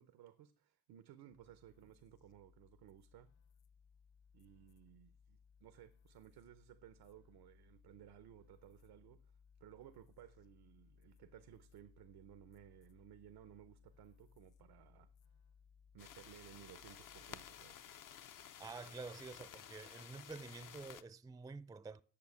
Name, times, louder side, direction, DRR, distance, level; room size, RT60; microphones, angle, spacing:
voice 1, 0.0-3.3 4.3-9.3 9.6-15.1 15.9-17.9, right 12 dB, 90° right, 0.7 m, -59 dB
sound 1, 1.3-17.9, left 6 dB, 80° left, 0.9 m, -67 dB
sound 2, 16.0-21.0, left 9 dB, 60° left, 0.7 m, -54 dB
voice 2, 18.6-22.0, right 4 dB, 10° right, 0.4 m, -49 dB
8.7 x 6.7 x 7.0 m
cardioid pair, 75°, 37 cm